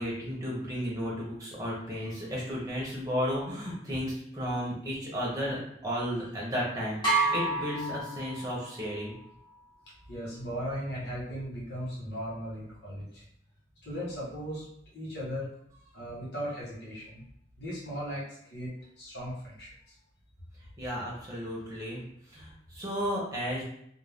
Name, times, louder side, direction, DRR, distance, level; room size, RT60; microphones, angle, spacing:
voice 1, 0.0-9.1 20.8-22.0 22.3-23.6, equal, 20° right, -5 dB, 0.9 m, -33 dB
sound 1, 7.0-8.8, right 3 dB, 25° left, 1.2 m, -29 dB
voice 2, 10.1-13.2 13.8-14.6 14.9-15.5 15.9-17.2 17.6-19.9, equal, 70° left, -6 dB, 1.3 m, -37 dB
2.6 x 2.1 x 3.5 m, 0.71 s
head